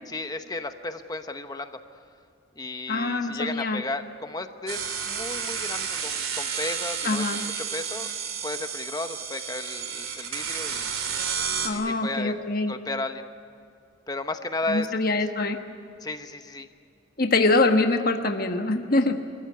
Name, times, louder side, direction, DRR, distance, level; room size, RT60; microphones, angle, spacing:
voice 1, 0.1-1.7 2.6-8.1 8.4-10.9 11.7-12.3 12.7-13.3 14.1-14.9 16.0-16.7, left 2 dB, 20° left, 8 dB, 0.9 m, -34 dB
voice 2, 2.9-3.8 7.0-7.4 11.6-12.7 14.7-15.6 17.2-19.2, left 2 dB, 45° left, 5 dB, 1.4 m, -24 dB
sound 1, 4.7-11.7, right 7 dB, 90° right, 3.3 m, -31 dB
27.0 x 15.0 x 9.5 m, 2.5 s
head